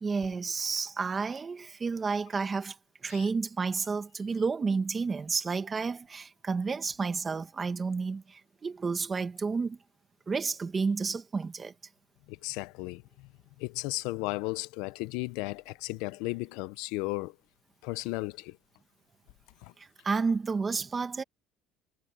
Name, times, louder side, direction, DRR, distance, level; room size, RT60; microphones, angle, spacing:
voice 1, 0.0-2.8 3.0-9.8 10.3-11.7 19.8-21.2, right 4 dB, 20° right, 1.6 m, -31 dB
voice 2, 12.3-13.0 13.6-17.3 17.8-18.6 19.6-19.7, left 22 dB, 80° left, 0.6 m, -35 dB
cardioid pair, 155°, 0 cm